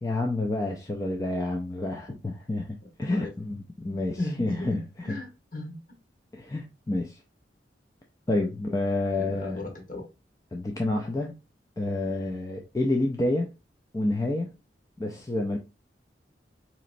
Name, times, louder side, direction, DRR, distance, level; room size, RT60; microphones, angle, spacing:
voice 1, 0.0-4.8 6.3-7.2 8.3-9.6 10.5-11.3 11.8-13.5 13.9-14.5 15.0-15.6, left 2 dB, 20° left, 0.4 m, -29 dB
voice 2, 3.9-4.8 5.0-6.0 9.2-10.0, left 2 dB, 50° left, 1.3 m, -35 dB
4.1 x 2.9 x 2.5 m
head